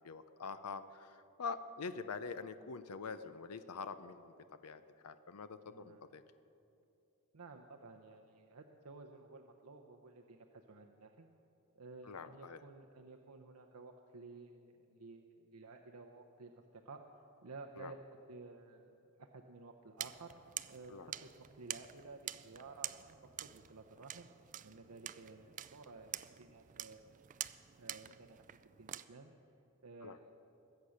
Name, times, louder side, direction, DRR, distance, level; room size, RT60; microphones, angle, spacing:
voice 1, 0.0-4.3 4.6-6.2 12.0-12.6 17.8-17.9 20.9-21.1 30.0-30.2, left 5 dB, 85° left, 11 dB, 0.6 m, -45 dB
voice 2, 5.7-6.0 7.3-11.3 11.8-17.0 17.4-20.3 20.7-23.0 23.4-24.3 24.6-27.2 27.8-29.4 29.8-30.4, right 3 dB, 90° right, 3 dB, 0.8 m, -54 dB
sound 1, 20.0-29.0, right 12 dB, 35° right, 0.4 m, -47 dB
21.5 x 8.4 x 6.4 m, 2.8 s
head